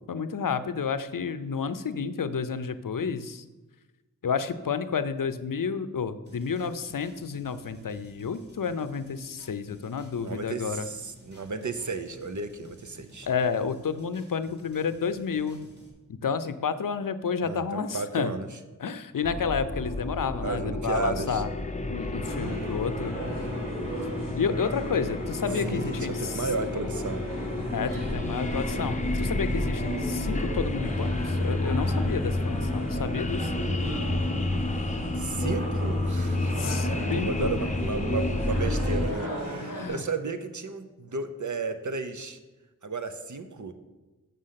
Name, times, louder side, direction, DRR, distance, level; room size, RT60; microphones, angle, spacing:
voice 1, 0.0-3.4 4.2-10.9 13.2-15.7 16.2-18.3 18.8-21.5 21.9-23.2 24.3-26.5 27.7-33.5 36.6-37.6 39.6-40.0, left 6 dB, 80° left, 12 dB, 0.5 m, -30 dB
sound 1, 6.2-15.9, left 1 dB, 30° right, 2.4 m, -53 dB
voice 2, 10.2-13.3 17.4-18.5 20.4-21.4 25.5-27.3 35.2-42.4 42.8-43.7, right 4 dB, 65° right, 9 dB, 0.7 m, -33 dB
sound 2, 19.2-39.1, left 2 dB, 20° left, 0.6 m, -30 dB
sound 3, 22.2-39.9, right 1 dB, 85° right, 3.1 m, -37 dB
6.8 x 6.4 x 5.7 m, 1.2 s
wide cardioid pair, 45°, 33 cm